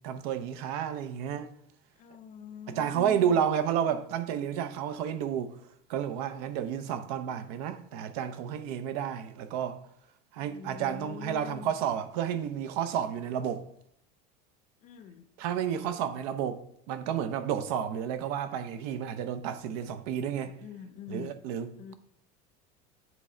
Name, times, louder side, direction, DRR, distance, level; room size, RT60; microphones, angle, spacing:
voice 1, 0.0-1.5 2.7-5.6 5.9-9.8 10.3-13.6 15.4-20.6 21.1-21.9, right 9 dB, 75° right, 0.7 m, -31 dB
voice 2, 2.0-3.4 10.4-11.7 14.8-15.3 20.3-21.3 21.8-21.9, left 7 dB, 40° left, 0.6 m, -44 dB
8.0 x 3.3 x 4.9 m
supercardioid pair, 140°, 20 cm